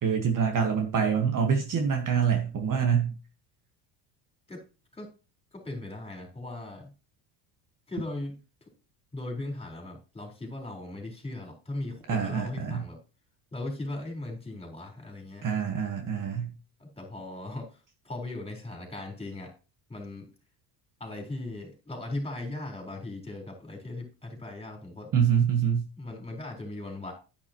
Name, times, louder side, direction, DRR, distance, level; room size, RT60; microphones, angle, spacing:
voice 1, 0.0-3.1 12.1-12.8 15.4-16.5 25.1-25.8, right 7 dB, 40° right, 5 dB, 1.7 m, -25 dB
voice 2, 5.5-6.9 7.9-8.4 9.1-13.0 13.5-15.5 16.8-17.7 18.0-19.5 19.9-20.3 21.0-25.1 26.0-27.1, left 2 dB, 10° left, 0 dB, 4.5 m, -38 dB
10.0 x 9.2 x 3.1 m, 0.33 s
supercardioid pair, 95°, 48 cm